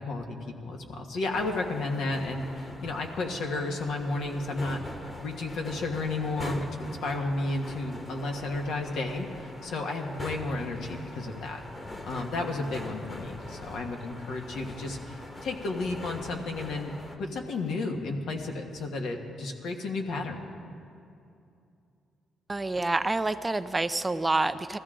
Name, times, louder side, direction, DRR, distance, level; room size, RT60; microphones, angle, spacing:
voice 1, 0.0-4.8 5.2-11.6 12.0-20.4, left 2 dB, 75° left, 2 dB, 1.5 m, -32 dB
sound 1, 1.3-17.2, left 1 dB, 25° left, 1.4 m, -42 dB
voice 2, 22.5-24.8, right 2 dB, 20° right, 12 dB, 0.4 m, -27 dB
20.0 x 14.5 x 3.8 m, 2.6 s
cardioid pair, 90°, 0 cm